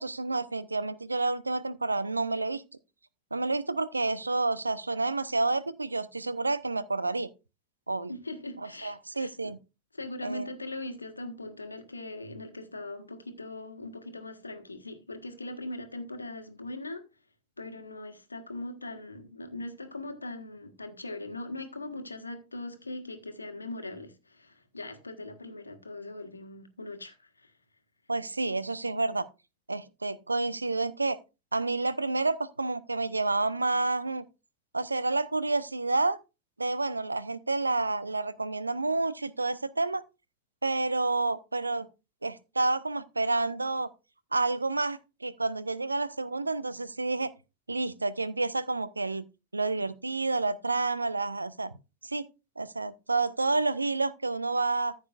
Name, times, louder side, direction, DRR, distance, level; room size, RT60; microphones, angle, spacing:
voice 1, 0.0-2.6 3.3-7.3 7.9-8.1 8.6-9.6 10.2-10.5 28.1-29.3 29.7-31.2 31.5-34.2 34.7-36.2 36.6-40.0 40.6-41.9 42.2-43.9 44.3-47.3 47.7-49.2 49.5-51.7 52.0-52.3 52.6-55.0, right 3 dB, 80° right, 0.6 m, -29 dB
voice 2, 8.1-9.5 9.9-17.0 17.6-27.5, left 2 dB, 80° left, 1.4 m, -40 dB
14.0 x 7.3 x 2.4 m
figure-of-eight pair, 90°, 0 cm